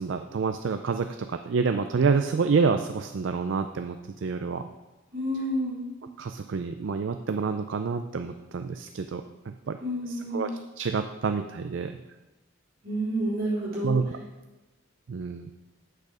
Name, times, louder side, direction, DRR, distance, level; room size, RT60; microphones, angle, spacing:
voice 1, 0.0-4.7 6.2-9.8 10.1-10.5 10.8-12.0 13.8-14.2 15.1-15.5, right 5 dB, 65° right, 8 dB, 0.4 m, -28 dB
voice 2, 5.1-5.8 9.8-10.5 12.8-14.0, right 1 dB, 45° right, -7 dB, 3.5 m, -29 dB
8.4 x 6.6 x 4.9 m, 1.1 s
head